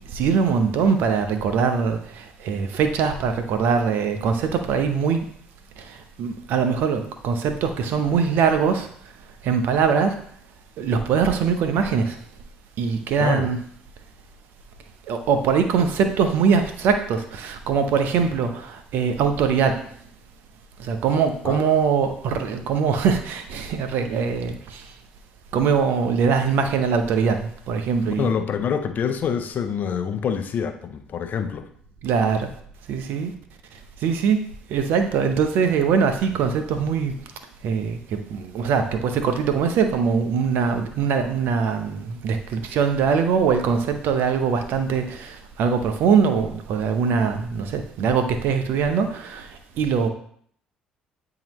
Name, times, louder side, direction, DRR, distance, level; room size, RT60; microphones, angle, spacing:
voice 1, 0.1-5.2 5.8-8.9 9.4-10.1 10.8-12.2 12.8-13.6 15.1-19.8 20.8-24.9 25.5-28.3 32.0-32.5 32.9-33.3 34.0-34.4 34.7-37.1 37.6-49.5 49.8-50.1, right 6 dB, 70° right, 7 dB, 0.8 m, -22 dB
voice 2, 13.2-13.5 21.4-21.6 28.1-31.6, left 7 dB, 55° left, 9 dB, 0.7 m, -26 dB
8.6 x 3.9 x 3.0 m, 0.62 s
hypercardioid pair, 60°, 4 cm